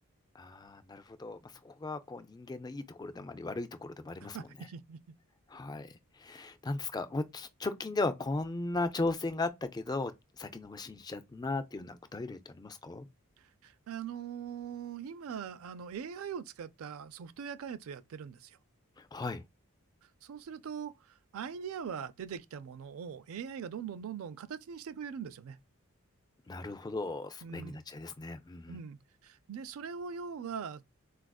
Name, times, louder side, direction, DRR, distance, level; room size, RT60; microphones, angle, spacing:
voice 1, 0.3-4.5 5.5-10.1 10.4-13.1 19.0-19.4 26.5-28.8, left 3 dB, 20° left, 0.3 m, -37 dB
voice 2, 4.3-5.0 13.6-18.6 20.2-25.6 27.4-27.8 28.7-30.8, right 7 dB, 70° right, 0.4 m, -41 dB
4.1 x 2.4 x 2.2 m
head